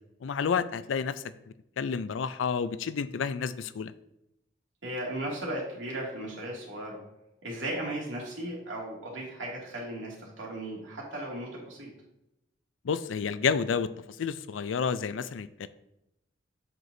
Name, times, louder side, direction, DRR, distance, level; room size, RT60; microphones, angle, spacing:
voice 1, 0.2-1.3 1.8-3.9 12.8-13.9 14.2-15.7, left 6 dB, 90° left, 14 dB, 0.4 m, -30 dB
voice 2, 4.8-7.0 7.4-11.9, right 1 dB, 90° right, -3 dB, 2.3 m, -36 dB
7.8 x 5.9 x 2.6 m, 0.86 s
head